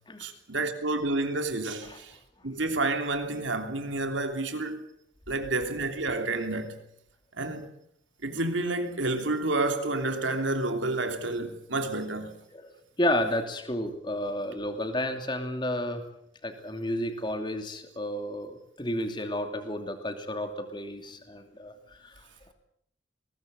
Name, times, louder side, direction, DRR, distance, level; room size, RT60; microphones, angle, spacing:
voice 1, 0.2-2.2 2.4-4.8 5.3-6.8 7.4-7.7 8.2-12.4, right 2 dB, 85° right, 3.2 m, -29 dB
voice 2, 13.0-16.0 16.4-22.2, left 1 dB, 25° left, 2.8 m, -31 dB
21.5 x 19.0 x 8.2 m
head